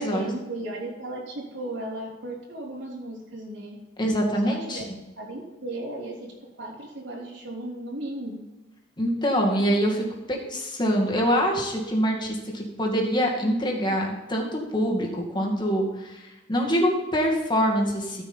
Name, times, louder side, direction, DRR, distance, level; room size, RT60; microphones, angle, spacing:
voice 1, 0.0-3.8 4.4-4.9 5.2-6.3 6.6-8.4, right 1 dB, 75° right, -5 dB, 3.8 m, -35 dB
voice 2, 4.0-4.8 9.0-18.2, equal, 25° left, -1 dB, 2.3 m, -25 dB
14.0 x 6.0 x 5.6 m, 1.1 s
head